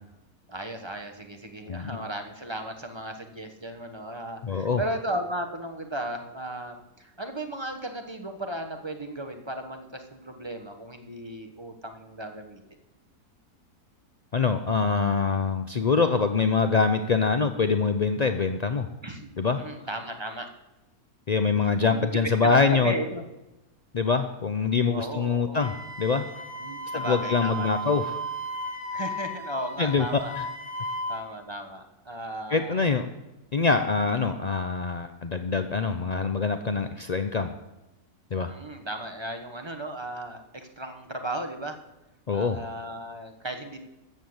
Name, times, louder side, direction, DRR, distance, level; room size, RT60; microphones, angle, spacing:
voice 1, 0.5-12.6 19.0-20.5 21.6-23.2 24.9-25.6 26.6-27.9 28.9-30.3 31.1-32.9 38.4-41.8 42.3-43.8, right 1 dB, 20° right, 4 dB, 1.0 m, -35 dB
voice 2, 4.4-4.8 14.3-18.9 19.4-19.6 21.3-22.9 23.9-26.2 26.9-28.1 29.8-30.4 32.5-33.1 33.5-37.5 38.3-38.5 42.3-42.6, left 5 dB, 85° left, 8 dB, 0.3 m, -24 dB
Wind instrument woodwind instrument, 25.6-31.2, equal, 20° left, 1.3 m, -35 dB
13.5 x 7.3 x 7.9 m, 1.0 s
omnidirectional pair, 1.6 m